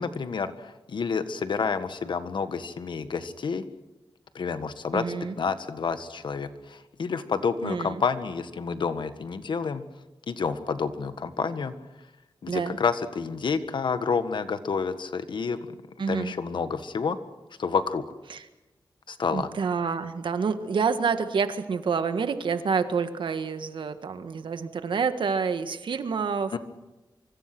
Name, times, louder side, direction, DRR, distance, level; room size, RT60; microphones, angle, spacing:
voice 1, 0.0-3.6 4.3-9.8 10.3-11.7 12.4-15.7 16.1-17.2 17.6-18.0 19.1-19.5 26.5-26.6, left 5 dB, 75° left, 10 dB, 1.6 m, -29 dB
voice 2, 4.9-5.3 7.6-8.0 12.5-12.8 16.0-16.3 18.3-18.4 19.3-26.6, right 5 dB, 80° right, 9 dB, 1.7 m, -28 dB
25.0 x 25.0 x 6.1 m, 1.1 s
wide cardioid pair, 105°, 8 cm